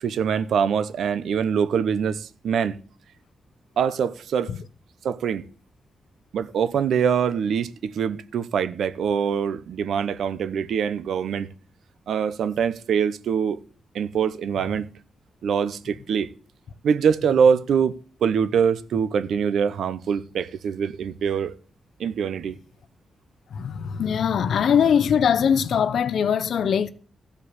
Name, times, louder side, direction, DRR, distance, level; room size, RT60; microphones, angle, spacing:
voice 1, 0.0-2.7 3.8-4.5 5.0-5.4 6.3-11.5 12.1-13.6 13.9-14.9 15.4-16.3 16.8-21.5 22.0-22.6, right 7 dB, 80° right, 0.7 m, -24 dB
voice 2, 23.5-26.9, left 7 dB, 65° left, 0.7 m, -21 dB
14.5 x 5.2 x 8.1 m
wide cardioid pair, 180°, 0 cm